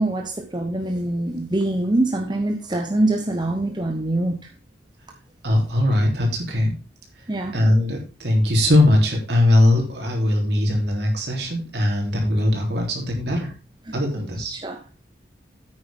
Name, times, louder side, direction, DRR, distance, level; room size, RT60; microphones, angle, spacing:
voice 1, 0.0-4.5 7.3-7.5 14.4-14.8, right 1 dB, 25° right, 0.9 m, -24 dB
voice 2, 5.4-6.7 7.5-13.5 13.9-14.5, left 1 dB, 60° right, 3.4 m, -20 dB
9.6 x 9.0 x 3.6 m
head